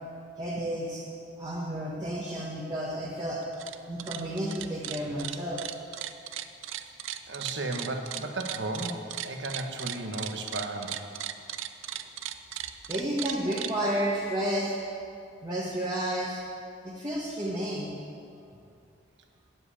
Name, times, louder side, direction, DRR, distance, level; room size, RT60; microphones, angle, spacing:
voice 1, 0.4-1.0 1.4-3.4 3.9-5.6 12.9-14.8 15.4-16.4 16.8-17.9, right 1 dB, 20° right, -6 dB, 1.4 m, -31 dB
sound 1, 3.4-3.7 4.0-13.7, right 12 dB, 85° right, 0.5 m, -36 dB
voice 2, 7.3-11.0, right 2 dB, 65° right, 4 dB, 1.2 m, -34 dB
9.8 x 7.8 x 8.3 m, 2.6 s
head